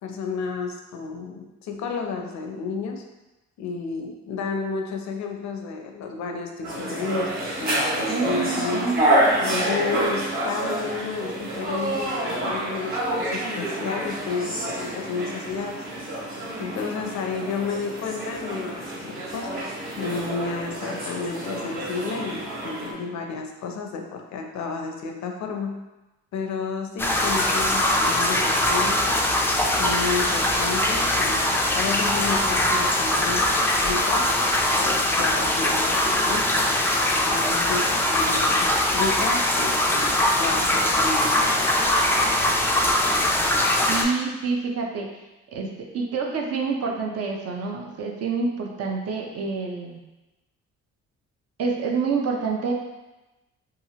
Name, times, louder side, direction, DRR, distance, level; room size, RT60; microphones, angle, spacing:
voice 1, 0.0-3.0 3.6-8.9 9.4-15.8 16.6-25.8 26.3-29.2 29.8-34.3 34.8-36.8 37.2-41.6, left 4 dB, 65° left, 3 dB, 0.5 m, -31 dB
Lecture Room Tone, 6.6-22.9, right 1 dB, 30° right, 1.2 m, -28 dB
voice 2, 8.1-9.0 43.8-45.1 45.5-45.7 45.9-50.0 51.6-52.7, right 4 dB, 55° right, 0 dB, 0.6 m, -27 dB
sound 1, 27.0-44.0, left 1 dB, 10° left, 0.3 m, -22 dB
2.9 x 2.4 x 2.8 m, 1.1 s
cardioid pair, 90°, 30 cm